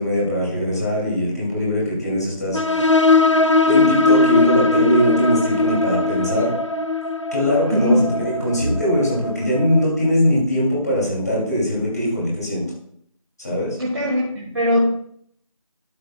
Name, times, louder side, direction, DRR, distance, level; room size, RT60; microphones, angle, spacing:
voice 1, 0.0-2.9 3.7-6.5 7.3-12.6 13.4-13.8, equal, 30° left, -4 dB, 2.8 m, -21 dB
sound 1, 2.5-9.8, left 3 dB, 55° left, 0.7 m, -19 dB
voice 2, 7.7-8.0 13.8-14.9, left 1 dB, 40° right, -4 dB, 1.7 m, -20 dB
12.5 x 7.0 x 2.3 m, 0.68 s
figure-of-eight pair, 175°, 18 cm